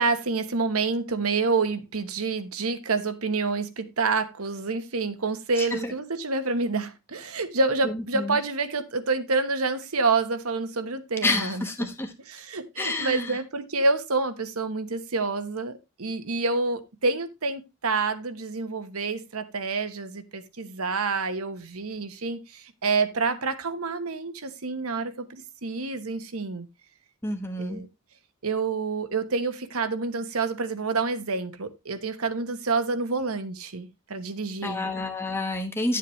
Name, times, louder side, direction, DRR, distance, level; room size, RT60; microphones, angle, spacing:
voice 1, 0.0-11.9 12.3-26.7 27.6-27.9 28.4-34.8, right 4 dB, 75° right, 1.2 m, -28 dB
voice 2, 5.6-5.9 7.8-8.4 11.2-12.1 12.8-13.4 27.2-27.8 34.6-36.0, left 2 dB, 10° left, 1.1 m, -29 dB
11.0 x 7.4 x 3.2 m
head